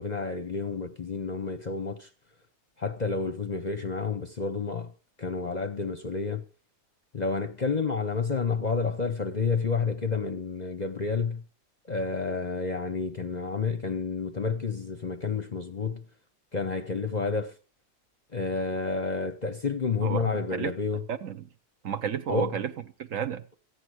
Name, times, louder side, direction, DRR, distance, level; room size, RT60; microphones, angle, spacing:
voice 1, 0.0-2.1 2.8-4.9 5.2-6.4 7.1-11.4 11.9-16.0 16.5-17.5 18.3-21.0 22.3-22.6, left 4 dB, 35° left, 0.8 m, -30 dB
voice 2, 20.0-20.7 21.1-21.5 21.8-22.7 23.0-23.4, right 8 dB, 65° right, 1.3 m, -31 dB
14.5 x 9.7 x 6.3 m
omnidirectional pair, 1.5 m